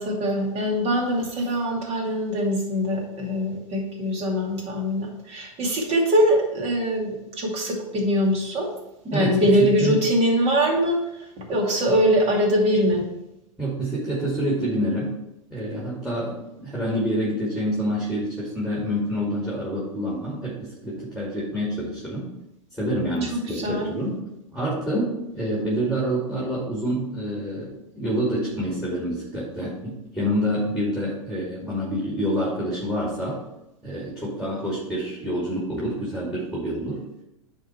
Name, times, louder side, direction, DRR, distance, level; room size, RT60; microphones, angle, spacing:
voice 1, 0.0-8.7 9.1-11.0 11.4-13.0 23.2-23.9, equal, 40° right, -1 dB, 2.5 m, -22 dB
voice 2, 9.1-10.0 13.6-15.1 15.5-22.3 22.7-24.2 24.5-33.4 33.8-37.0, equal, ahead, -5 dB, 2.4 m, -27 dB
9.7 x 3.9 x 4.5 m, 0.90 s
hypercardioid pair, 100°, 17 cm